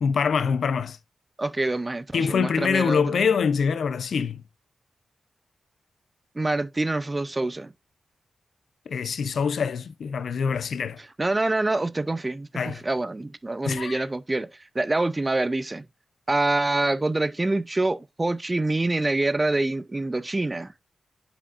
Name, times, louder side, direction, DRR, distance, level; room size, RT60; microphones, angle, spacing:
voice 1, 0.0-1.0 2.1-4.4 8.9-11.0 12.6-12.8 13.6-14.0, left 6 dB, 80° left, 0.5 m, -25 dB
voice 2, 1.4-3.2 6.3-7.7 11.2-14.5 14.7-15.9 16.3-20.7, right 2 dB, 25° right, 0.6 m, -26 dB
8.6 x 5.1 x 2.5 m
cardioid pair, 60°, 0 cm